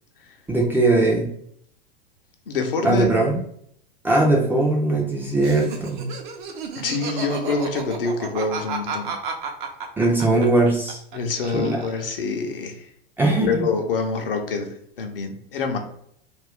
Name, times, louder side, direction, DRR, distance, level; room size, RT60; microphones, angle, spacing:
voice 1, 0.5-1.3 2.8-3.4 4.0-6.1 10.0-11.0 11.5-11.8 13.2-13.6, right 2 dB, 5° right, -2 dB, 0.4 m, -20 dB
voice 2, 2.5-3.2 6.7-9.2 11.1-12.9 13.3-15.8, left 4 dB, 70° left, 4 dB, 0.6 m, -26 dB
Laughter, 5.4-11.2 11.4-12.2, right 5 dB, 55° right, 0.6 m, -32 dB
2.5 x 2.2 x 3.4 m, 0.69 s
figure-of-eight pair, 95°, 29 cm